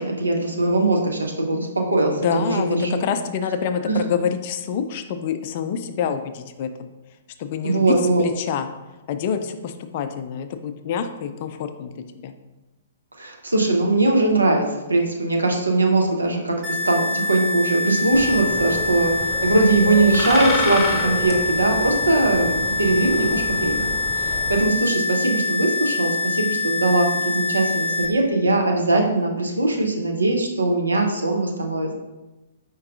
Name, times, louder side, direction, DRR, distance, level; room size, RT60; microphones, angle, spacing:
voice 1, 0.0-3.0 3.8-4.0 7.6-8.2 13.2-31.9, right 2 dB, 80° right, 1 dB, 0.7 m, -21 dB
voice 2, 2.1-6.9 7.4-8.7 9.1-12.3, left 7 dB, 40° left, 8 dB, 0.3 m, -27 dB
sound 1, 16.6-28.1, left 3 dB, 25° right, 1.0 m, -25 dB
sound 2, 18.1-24.6, left 2 dB, 15° left, 0.8 m, -30 dB
4.6 x 4.5 x 2.4 m, 1.1 s
figure-of-eight pair, 115°, 0 cm